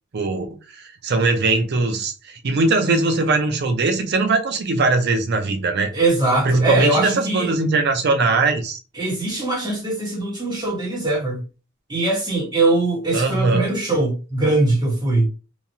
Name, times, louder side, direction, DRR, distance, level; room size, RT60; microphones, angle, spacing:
voice 1, 0.1-0.5 0.8-5.9 6.4-8.8 13.1-13.7, right 3 dB, 55° right, 0.5 m, -20 dB
voice 2, 5.9-7.5 8.9-11.4 11.9-15.3, right 2 dB, 20° right, 1.2 m, -21 dB
3.1 x 2.3 x 2.7 m
head